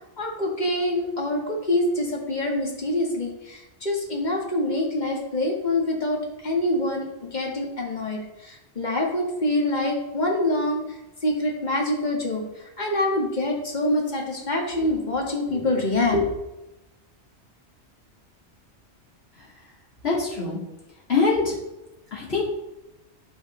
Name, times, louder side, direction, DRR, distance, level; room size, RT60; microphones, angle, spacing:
voice 1, 0.2-10.8 11.2-16.3, left 1 dB, 40° left, -1 dB, 1.7 m, -25 dB
voice 2, 20.0-20.6 21.1-21.5 22.1-22.4, left 4 dB, 60° left, -5 dB, 2.6 m, -23 dB
12.0 x 4.7 x 3.2 m, 0.95 s
omnidirectional pair, 1.2 m